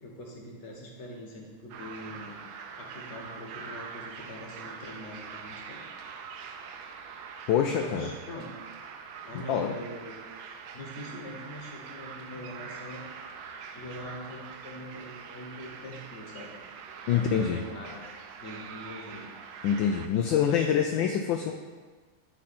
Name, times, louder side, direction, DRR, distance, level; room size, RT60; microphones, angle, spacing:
voice 1, 0.0-2.4 2.8-5.8 7.8-8.6 9.2-10.1 10.7-13.1 13.7-16.6 17.1-18.1 18.4-19.3 20.4-21.2, left 1 dB, 40° left, -1 dB, 1.3 m, -43 dB
sound 1, 1.7-20.1, right 6 dB, 75° right, 1.3 m, -44 dB
voice 2, 7.5-8.1 9.5-9.7 17.1-17.6 19.6-21.5, left 8 dB, 75° left, 4 dB, 1.1 m, -25 dB
10.5 x 4.0 x 4.3 m, 1.4 s
omnidirectional pair, 2.4 m